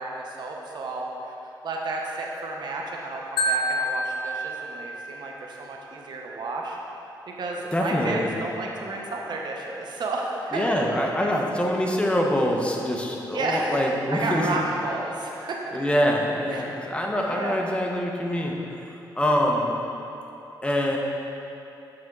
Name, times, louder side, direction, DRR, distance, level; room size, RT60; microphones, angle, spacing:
voice 1, 0.0-1.3 1.6-6.8 7.3-10.6 13.2-13.8 14.1-15.6 16.5-16.7 17.2-17.6, right 2 dB, 60° right, -1 dB, 0.7 m, -32 dB
Marimba xylophone, 3.4-5.4, equal, 75° left, 0.5 m, -28 dB
voice 2, 7.7-8.3 10.5-14.5 15.7-18.6 19.2-19.7 20.6-21.0, equal, 15° left, 0 dB, 0.8 m, -24 dB
7.7 x 4.3 x 3.6 m, 2.9 s
cardioid pair, 100°, 8 cm